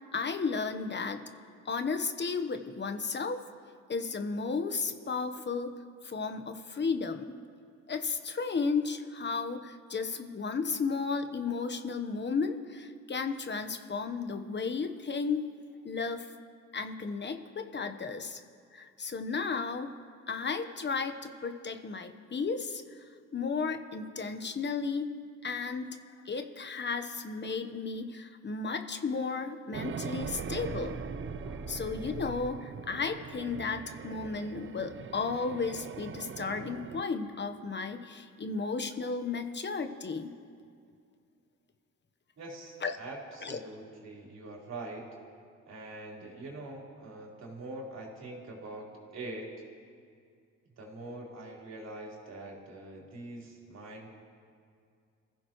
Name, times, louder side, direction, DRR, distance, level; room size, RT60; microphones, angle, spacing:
voice 1, 0.1-1.2 1.6-3.4 3.9-5.7 6.0-7.3 7.9-15.5 15.8-16.3 16.7-18.4 18.7-19.9 20.3-23.0 23.3-25.1 25.4-25.9 26.2-31.0 31.7-40.3 42.8-42.9 43.4-43.6, left 4 dB, 35° left, 7 dB, 1.1 m, -34 dB
sound 1, 29.7-37.1, right 8 dB, 40° right, 0.6 m, -41 dB
sound 2, 30.2-33.0, equal, 5° right, 0.6 m, -44 dB
voice 2, 42.4-45.1 45.7-48.9 49.1-49.5 50.8-54.1, right 2 dB, 60° right, -3 dB, 4.1 m, -43 dB
26.5 x 15.5 x 3.1 m, 2.2 s
cardioid pair, 90°, 30 cm